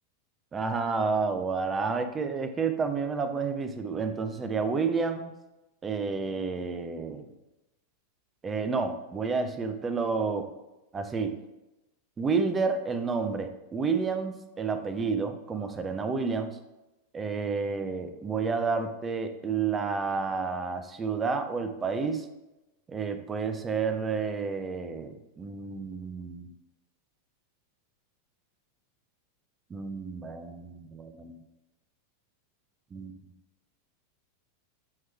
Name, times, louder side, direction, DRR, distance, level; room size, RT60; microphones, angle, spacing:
voice 1, 0.5-5.3 5.8-7.3 8.4-10.5 10.9-11.4 12.2-16.6 17.1-22.3 22.9-26.5 29.7-31.4 32.9-33.1, right 5 dB, 20° right, 8 dB, 0.5 m, -30 dB
7.4 x 3.1 x 4.4 m, 1.0 s
figure-of-eight pair, 90°, 0 cm